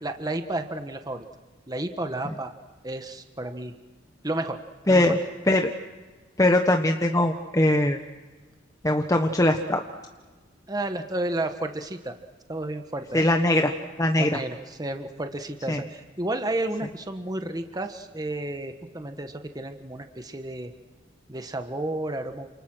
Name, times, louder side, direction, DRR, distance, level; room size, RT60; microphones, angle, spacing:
voice 1, 0.0-1.3 1.7-2.5 2.8-3.7 4.2-4.6 4.9-5.2 10.7-12.2 12.5-13.3 14.2-20.7 21.3-22.5, right 1 dB, 20° right, 7 dB, 1.5 m, -32 dB
voice 2, 4.9-5.2 5.5-5.7 6.4-8.0 8.8-9.8 13.1-13.7 14.0-14.3 15.7-15.8, left 1 dB, 20° left, 4 dB, 1.3 m, -21 dB
29.5 x 27.5 x 6.3 m, 1.3 s
head